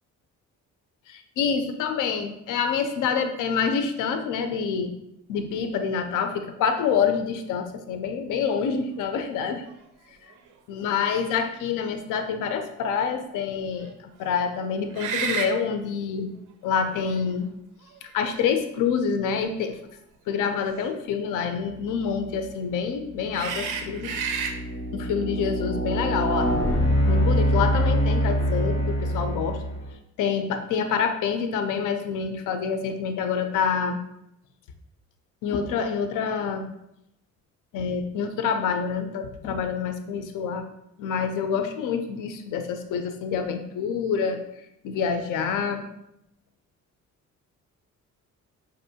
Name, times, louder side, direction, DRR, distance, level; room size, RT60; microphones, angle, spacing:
voice 1, 1.1-4.9 5.3-9.6 10.7-13.9 14.2-16.3 16.6-17.5 18.0-19.8 20.3-24.1 24.9-26.5 27.0-29.6 30.2-34.0 35.4-36.7 37.7-40.6 41.0-44.4 44.8-45.9, left 6 dB, 90° left, 7 dB, 0.5 m, -27 dB
sound 1, 9.7-9.8 10.3-10.5 14.9-15.5 16.8-16.9 17.9-18.7 20.6-20.8 23.3-24.6, right 6 dB, 80° right, 0.6 m, -30 dB
sound 2, 22.3-22.5 23.1-29.9, equal, 40° left, 1.3 m, -25 dB
5.4 x 2.6 x 2.7 m, 0.81 s
cardioid pair, 160°, 30 cm